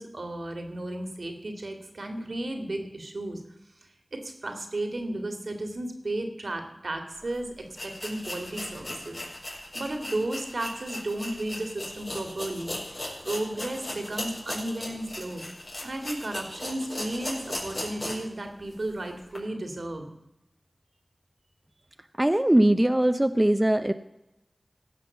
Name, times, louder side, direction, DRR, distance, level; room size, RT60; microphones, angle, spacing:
voice 1, 0.0-3.4 4.2-9.2 9.7-15.4 15.8-20.1, right 1 dB, 75° right, 5 dB, 2.2 m, -34 dB
sound 1, 7.2-7.3 7.7-18.3 18.7-18.8 19.3-19.4, left 1 dB, 55° left, 4.6 m, -37 dB
voice 2, 22.2-23.9, right 1 dB, 20° right, 9 dB, 0.6 m, -21 dB
16.0 x 5.9 x 7.1 m, 0.88 s
wide cardioid pair, 40°, 0 cm